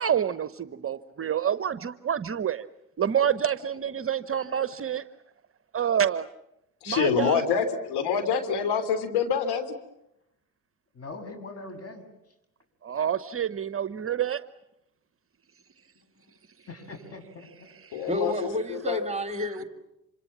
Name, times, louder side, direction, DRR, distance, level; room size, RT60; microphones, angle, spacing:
voice 1, 0.0-2.6 3.0-5.0 5.7-6.3 6.9-7.4 12.8-14.4 17.8-18.1, right 9 dB, 30° right, 14 dB, 0.9 m, -27 dB
voice 2, 6.8-9.7 17.9-18.3 18.7-19.0, left 7 dB, 60° left, 8 dB, 3.4 m, -26 dB
voice 3, 10.9-12.0 16.7-17.7, left 2 dB, 35° left, 8 dB, 7.0 m, -42 dB
voice 4, 18.1-19.6, left 1 dB, 15° right, 8 dB, 2.8 m, -30 dB
27.0 x 26.5 x 7.3 m, 0.86 s
hypercardioid pair, 70°, 44 cm